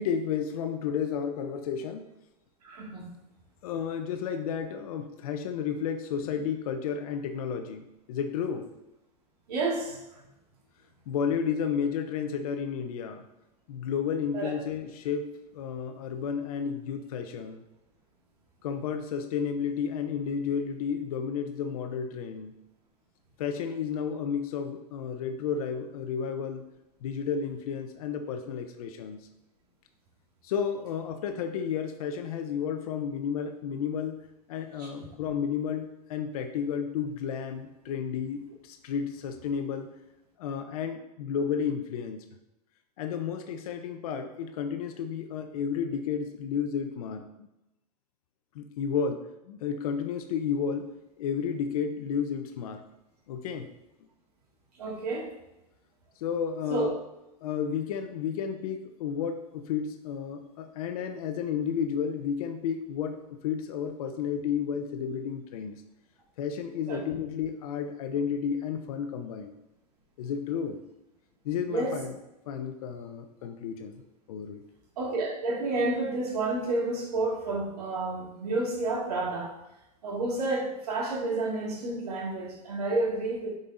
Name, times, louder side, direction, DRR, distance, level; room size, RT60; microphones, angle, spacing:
voice 1, 0.0-2.1 3.6-8.7 11.1-13.2 13.7-15.3 15.5-17.6 18.6-22.5 23.4-26.6 27.0-29.3 30.4-39.9 40.4-42.2 43.0-47.3 48.5-50.9 51.2-52.8 53.3-53.7 56.2-56.9 57.4-65.8 66.4-69.5 70.2-70.8 71.4-72.1 72.5-74.0 74.3-74.6, left 7 dB, 70° left, 7 dB, 0.7 m, -32 dB
voice 2, 2.6-3.1 9.5-10.0 14.3-14.5 34.8-34.9 54.8-55.3 56.7-56.9 66.9-67.0 71.7-71.9 75.0-79.5 80.0-83.5, right 2 dB, 85° right, -2 dB, 2.0 m, -30 dB
6.9 x 5.3 x 2.6 m, 0.91 s
hypercardioid pair, 125°, 20 cm